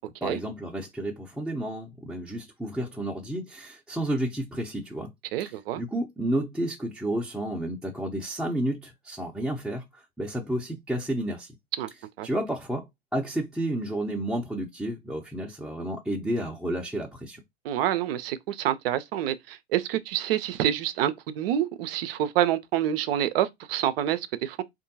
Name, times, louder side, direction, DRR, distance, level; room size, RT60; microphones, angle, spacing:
voice 1, 0.2-5.1 5.5-11.5 12.2-17.4, right 1 dB, ahead, 0.7 m, -31 dB
voice 2, 5.3-5.8 11.8-11.9 12.2-12.3 17.6-24.6, right 11 dB, 65° right, 0.6 m, -27 dB
3.5 x 2.7 x 2.7 m
figure-of-eight pair, 80°, 32 cm